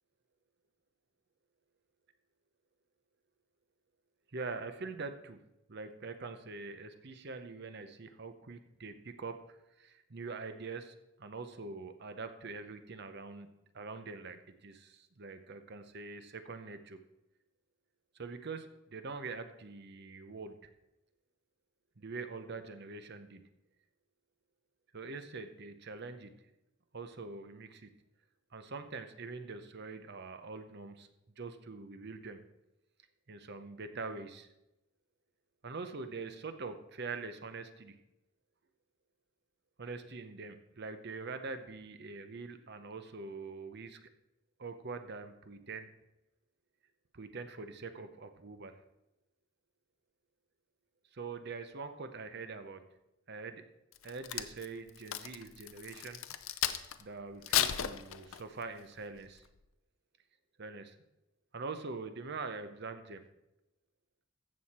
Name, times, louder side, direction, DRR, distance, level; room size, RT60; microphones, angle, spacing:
voice 1, 4.3-5.4 5.7-13.5 13.7-17.0 18.1-20.7 22.0-23.5 24.9-26.4 26.9-27.9 28.5-31.1 31.4-32.4 33.3-34.5 35.6-38.0 39.8-44.1 44.6-45.9 47.1-48.8 51.1-52.8 53.3-53.7 54.0-56.2 56.6-56.7 57.0-59.4 60.6-61.0 61.5-63.2, right 4 dB, 50° right, 9 dB, 0.8 m, -44 dB
Crack, 53.9-57.0 57.4-58.6 59.2-59.4, left 11 dB, 75° left, 0.6 m, -34 dB
15.0 x 6.4 x 4.3 m, 0.92 s
head